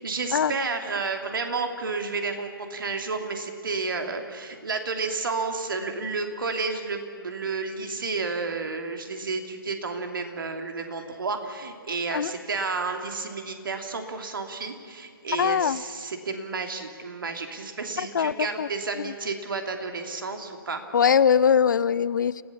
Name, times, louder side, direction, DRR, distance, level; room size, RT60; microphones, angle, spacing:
voice 1, 0.0-20.8, right 4 dB, 65° right, 5 dB, 3.0 m, -31 dB
voice 2, 15.4-15.8 18.0-18.7 18.9-19.1 20.9-22.4, left 7 dB, 55° left, 19 dB, 0.6 m, -22 dB
30.0 x 16.0 x 7.2 m, 2.1 s
figure-of-eight pair, 135°, 12 cm